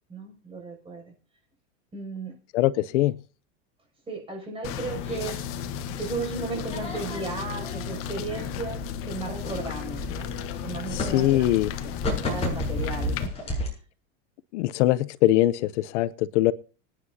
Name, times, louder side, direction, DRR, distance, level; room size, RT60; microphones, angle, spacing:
voice 1, 0.1-1.1 1.9-2.3 4.1-5.4 6.0-10.3 10.6-11.4 11.8-13.7, right 4 dB, 15° right, 6.8 m, -35 dB
voice 2, 2.5-3.2 10.9-11.7 14.5-16.5, left 15 dB, 70° left, 0.8 m, -22 dB
sound 1, 4.6-13.3, left 8 dB, 35° left, 1.3 m, -34 dB
sound 2, 5.0-13.7, left 1 dB, 15° left, 7.8 m, -35 dB
26.0 x 9.9 x 2.8 m
supercardioid pair, 150°, 37 cm